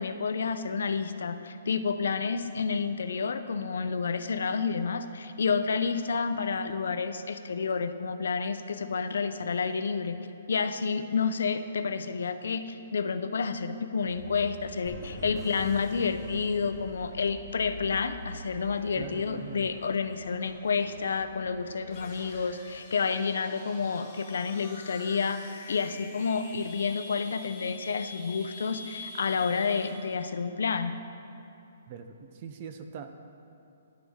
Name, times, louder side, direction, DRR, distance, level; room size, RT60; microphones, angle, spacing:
voice 1, 0.0-10.2 10.5-30.9, left 5 dB, 70° left, 10 dB, 0.5 m, -30 dB
sound 1, 14.0-22.4, equal, 70° right, 1.6 m, -47 dB
sound 2, 14.9-17.7, left 2 dB, 5° left, 0.7 m, -45 dB
voice 2, 19.0-19.7 31.9-33.1, right 6 dB, 25° right, 8 dB, 0.4 m, -42 dB
sound 3, 21.9-30.2, left 3 dB, 20° left, 1.2 m, -46 dB
11.0 x 7.1 x 3.6 m, 2.8 s
hypercardioid pair, 175°, 0 cm